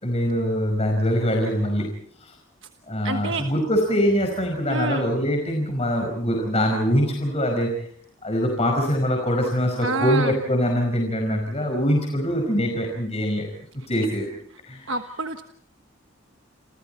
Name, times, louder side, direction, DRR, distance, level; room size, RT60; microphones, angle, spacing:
voice 1, 0.0-1.9 2.2-2.3 2.9-7.7 8.2-13.5 13.9-14.3 14.6-14.9, equal, 30° left, 2 dB, 5.1 m, -23 dB
voice 2, 3.0-3.5 4.7-5.1 9.8-10.3 14.9-15.4, right 3 dB, 65° right, 6 dB, 1.4 m, -27 dB
29.5 x 28.0 x 4.4 m, 0.62 s
head